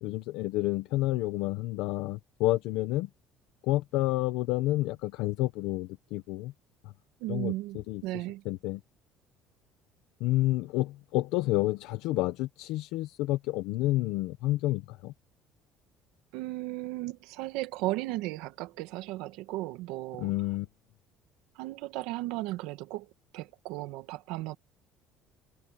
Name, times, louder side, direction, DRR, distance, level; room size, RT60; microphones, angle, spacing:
voice 1, 0.0-3.1 3.6-6.5 6.8-6.9 7.3-8.8 10.2-15.1 20.2-20.7, left 17 dB, 80° left, 0.9 m, -30 dB
voice 2, 7.2-8.4 16.3-20.3 21.5-23.1 23.3-24.6, right 18 dB, 90° right, 1.6 m, -35 dB
cardioid pair, 170°, 0 cm